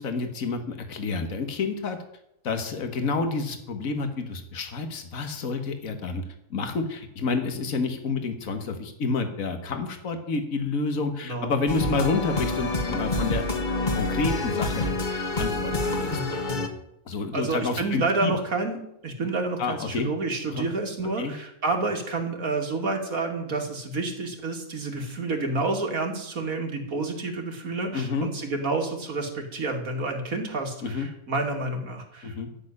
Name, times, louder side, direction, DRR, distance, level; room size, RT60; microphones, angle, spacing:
voice 1, 0.0-2.0 2.4-6.2 6.5-13.5 13.9-16.2 17.1-18.3 19.6-20.1 20.5-20.7 21.2-21.3 27.9-28.3 30.8-31.1 32.2-32.5, left 4 dB, 75° left, 7 dB, 1.9 m, -29 dB
voice 2, 11.2-12.0 17.3-32.6, right 3 dB, 75° right, 3 dB, 2.8 m, -29 dB
sound 1, 11.7-16.7, left 2 dB, 35° left, 1.6 m, -27 dB
13.5 x 6.6 x 9.8 m, 0.81 s
omnidirectional pair, 1.5 m